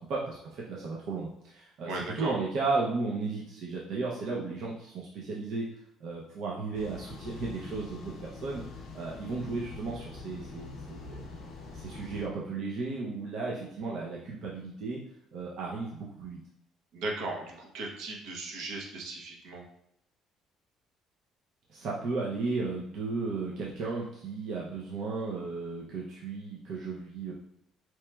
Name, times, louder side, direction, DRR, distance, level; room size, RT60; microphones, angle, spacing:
voice 1, 0.1-5.7 6.0-8.6 8.9-11.2 11.7-15.0 15.3-16.4 21.7-27.3, right 3 dB, 50° right, -4 dB, 0.5 m, -34 dB
voice 2, 1.8-2.3 16.9-19.6, right 2 dB, 70° right, -1 dB, 0.8 m, -37 dB
sound 1, 6.7-12.3, left 4 dB, 45° left, 0.5 m, -44 dB
4.5 x 2.9 x 2.2 m, 0.76 s
cardioid pair, 175°, 0 cm